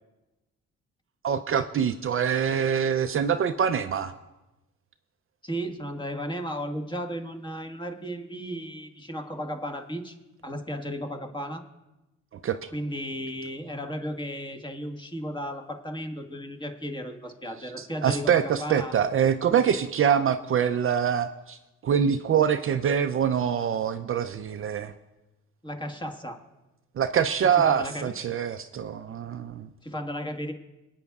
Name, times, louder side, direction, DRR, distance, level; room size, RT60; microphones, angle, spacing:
voice 1, 1.2-4.1 12.4-12.7 17.8-24.9 27.0-29.7, right 8 dB, 45° right, 9 dB, 0.5 m, -25 dB
voice 2, 5.4-10.2 10.4-11.6 12.7-18.9 25.6-26.4 27.6-28.1 29.8-30.5, equal, 15° left, 4 dB, 1.5 m, -34 dB
26.0 x 9.3 x 2.4 m, 1.0 s
cardioid pair, 90°, 30 cm